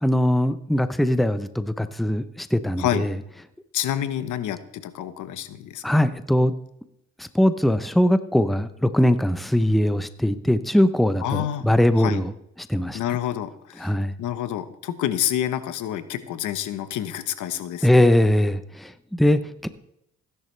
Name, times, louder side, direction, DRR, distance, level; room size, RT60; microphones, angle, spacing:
voice 1, 0.0-3.1 5.8-6.5 7.2-12.3 12.7-13.0 13.8-14.1 17.8-19.7, left 1 dB, ahead, 12 dB, 0.7 m, -21 dB
voice 2, 3.7-5.8 11.2-11.7 12.0-12.2 12.9-17.9, left 11 dB, 80° left, 12 dB, 1.0 m, -28 dB
15.5 x 11.0 x 3.3 m, 0.76 s
cardioid pair, 90°, 30 cm